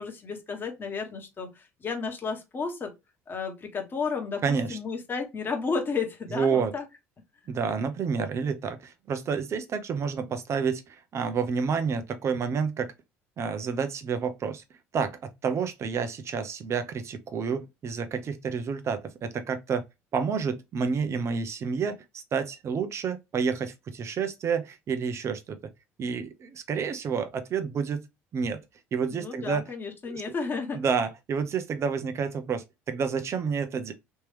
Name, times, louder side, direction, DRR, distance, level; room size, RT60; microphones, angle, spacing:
voice 1, 0.0-2.9 3.3-6.8 29.1-30.9, left 5 dB, 35° left, 1.4 m, -32 dB
voice 2, 4.4-4.8 6.3-6.7 7.5-12.9 13.4-14.6 14.9-19.8 20.1-25.6 26.0-28.1 28.3-28.6 28.9-29.7 30.1-30.2 30.7-33.9, right 6 dB, 45° right, 0.9 m, -29 dB
3.3 x 3.0 x 3.3 m
supercardioid pair, 75°, 6 cm